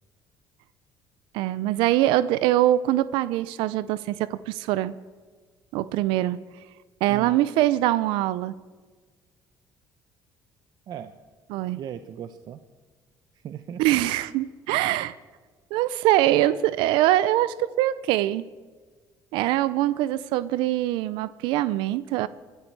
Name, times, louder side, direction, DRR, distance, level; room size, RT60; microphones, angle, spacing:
voice 1, 1.3-4.9 5.7-6.4 7.0-8.5 11.5-11.8 13.8-15.1 15.7-18.4 19.3-22.3, right 14 dB, 85° right, 16 dB, 0.5 m, -23 dB
voice 2, 11.7-12.6 13.4-14.0, right 9 dB, 55° right, 10 dB, 0.8 m, -37 dB
22.0 x 12.5 x 4.7 m, 1.4 s
cardioid pair, 105°, 8 cm